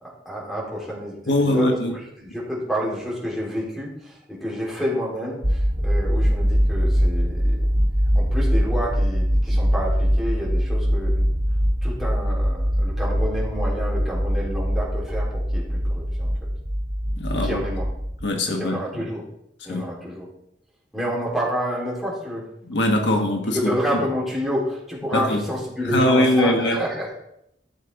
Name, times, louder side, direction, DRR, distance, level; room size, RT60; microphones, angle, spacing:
voice 1, 0.0-1.7 2.2-7.7 8.2-11.3 11.8-16.3 17.3-17.9 18.5-19.3 19.6-20.3 20.9-22.4 23.0-23.2 23.5-27.1, equal, ahead, -6 dB, 3.6 m, -29 dB
voice 2, 1.3-1.9 9.5-9.6 17.2-17.6 18.2-18.8 19.7-19.8 22.6-23.7 25.1-25.5 25.8-26.8, left 1 dB, 70° left, 3 dB, 1.4 m, -21 dB
sound 1, 5.4-18.2, equal, 50° right, 3.1 m, -22 dB
14.0 x 6.6 x 4.7 m, 0.78 s
head